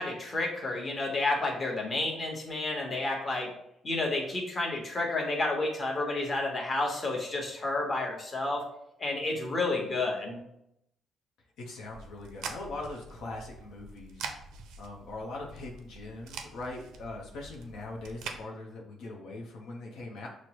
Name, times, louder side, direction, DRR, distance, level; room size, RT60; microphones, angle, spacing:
voice 1, 0.0-3.5 3.8-8.6 9.0-10.4, left 2 dB, 35° left, -1 dB, 1.1 m, -30 dB
voice 2, 11.6-14.3 14.8-20.3, left 2 dB, 85° left, -1 dB, 0.7 m, -41 dB
sound 1, 11.9-18.4, right 5 dB, 90° right, 0.4 m, -44 dB
6.1 x 2.1 x 2.9 m, 0.79 s
cardioid pair, 90°, 0 cm